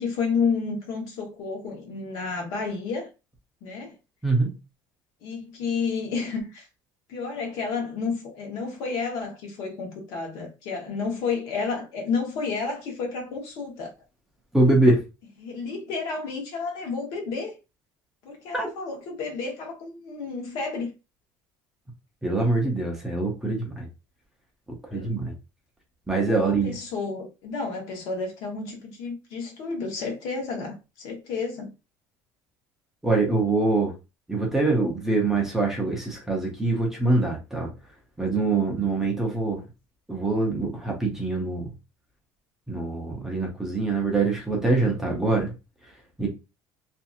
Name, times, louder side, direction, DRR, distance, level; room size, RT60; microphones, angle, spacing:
voice 1, 0.0-3.1 3.6-3.9 5.2-6.7 7.1-13.9 15.4-17.5 18.2-20.9 24.9-25.1 26.3-31.7, left 4 dB, 55° left, 1.0 m, -31 dB
voice 2, 4.2-4.6 14.5-15.0 18.5-18.7 22.2-23.9 24.9-25.3 26.1-26.7 33.0-33.9 34.3-37.7 38.2-39.6 40.1-41.7 42.7-45.5 46.2-46.3, right 3 dB, 5° right, 0.5 m, -24 dB
2.7 x 2.5 x 2.4 m
cardioid pair, 180°, 8 cm